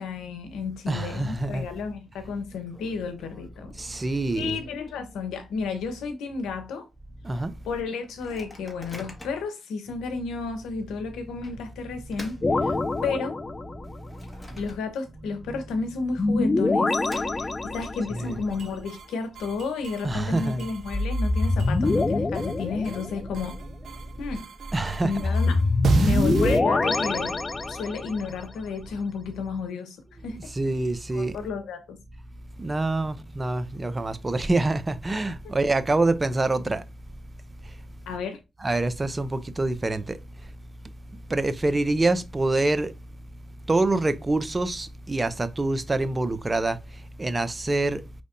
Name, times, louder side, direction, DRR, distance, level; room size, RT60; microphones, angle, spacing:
voice 1, 0.0-3.7 4.3-6.9 7.6-12.4 12.6-12.8 13.0-13.4 14.6-16.9 17.3-23.6 24.2-24.4 25.0-25.7 25.9-27.4 27.7-30.0 30.2-30.4 31.1-32.0 38.1-38.4, left 4 dB, 90° left, 0.9 m, -32 dB
voice 2, 0.9-1.7 3.8-4.6 7.2-7.5 12.7-12.9 15.5-15.6 18.1-18.4 20.0-20.7 24.7-25.3 26.0-26.2 30.5-31.3 32.6-36.8 38.6-40.2 41.3-42.9 43.7-46.8 47.2-48.0, right 2 dB, 35° right, 0.7 m, -26 dB
Microwave oven, 1.8-1.9 2.1-2.2 2.5-5.6 6.0-6.1 6.4-6.7 7.2-7.3 8.0-9.6 10.2-10.3 11.4-13.3 13.7-15.2 15.5-15.6 16.4-17.9, left 1 dB, 20° left, 1.7 m, -48 dB
sound 1, 12.4-14.0 16.2-18.2 20.9-23.4 25.2-28.2, left 3 dB, 40° left, 0.4 m, -25 dB
sound 2, 18.5-19.0 19.3-20.0 20.3-22.0 22.3-23.0 23.3-24.0 24.3-26.6, right 5 dB, 75° right, 0.4 m, -30 dB
5.3 x 3.4 x 2.6 m
supercardioid pair, 45°, 0 cm